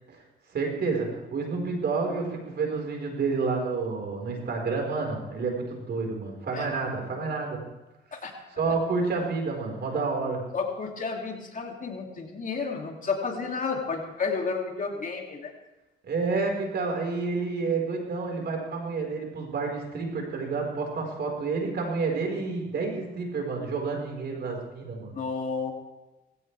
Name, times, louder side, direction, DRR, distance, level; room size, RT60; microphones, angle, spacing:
voice 1, 0.5-7.6 8.6-10.4 16.1-25.1, right 4 dB, 55° right, 1 dB, 4.9 m, -29 dB
voice 2, 10.5-15.5 25.1-25.7, left 4 dB, 40° left, 1 dB, 2.8 m, -31 dB
20.0 x 16.5 x 3.5 m, 1.1 s
cardioid pair, 90°, 20 cm